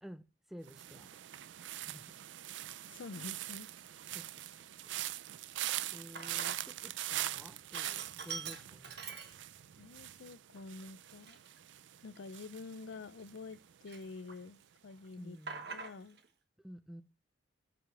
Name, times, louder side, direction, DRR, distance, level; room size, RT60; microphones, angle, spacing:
voice 1, 0.0-1.1 1.6-2.2 4.1-4.2 4.6-4.7 5.9-9.2 15.2-15.7 16.6-17.0, equal, ahead, 0.6 m, -52 dB
sound 1, 0.7-13.7 14.0-14.4, right 14 dB, 75° right, 0.4 m, -43 dB
Sink (filling or washing), 1.6-1.8 2.5-3.0 3.4-3.5 3.8-6.9 7.2-9.8 10.2-10.3 11.0-13.5 13.9-14.6 14.9-16.3, right 5 dB, 60° right, 1.2 m, -47 dB
voice 2, 2.8-3.7 9.8-11.4 12.0-15.4 15.7-16.2, left 3 dB, 75° left, 0.5 m, -48 dB
14.0 x 5.1 x 3.3 m
head